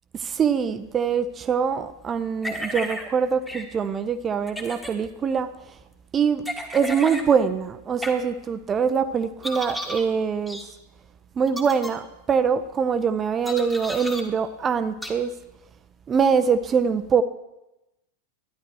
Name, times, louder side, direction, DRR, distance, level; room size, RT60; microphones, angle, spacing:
voice 1, 0.1-5.8 6.1-6.4 6.7-10.6 11.4-15.3 16.1-17.2, right 6 dB, 25° right, 0.5 m, -23 dB
sound 1, 2.4-3.1 3.5-3.6 4.5-4.9 6.5-7.3 8.0-8.1 9.4-10.1 10.5-10.6 11.5-11.9 13.5-14.2 15.0-15.1, equal, 5° left, 1.5 m, -33 dB
12.5 x 10.5 x 4.6 m
figure-of-eight pair, 90°, 0 cm